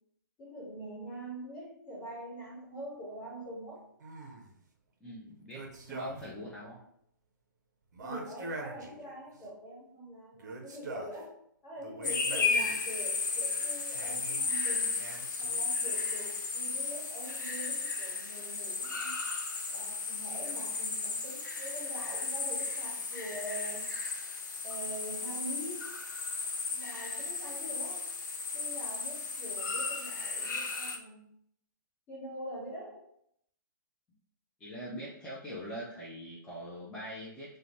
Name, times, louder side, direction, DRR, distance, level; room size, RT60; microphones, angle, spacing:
voice 1, 0.4-3.9 6.6-6.8 8.0-11.4 11.6-15.0 15.4-19.2 19.7-23.9 24.6-25.9 26.7-28.1 28.5-31.2 32.1-33.0, right 1 dB, 25° left, -5 dB, 1.2 m, -44 dB
sound 1, 4.0-4.6 5.5-6.5 6.7-6.8 7.9-9.5 10.3-11.2 11.8-12.9 13.9-14.5 15.0-15.7, right 3 dB, 55° right, 0.5 m, -44 dB
voice 2, 5.0-6.8 34.6-37.6, equal, 10° left, -8 dB, 0.5 m, -42 dB
sound 2, 12.0-31.0, left 4 dB, 60° left, 0.6 m, -34 dB
2.5 x 2.2 x 2.9 m, 0.70 s
figure-of-eight pair, 120°, 11 cm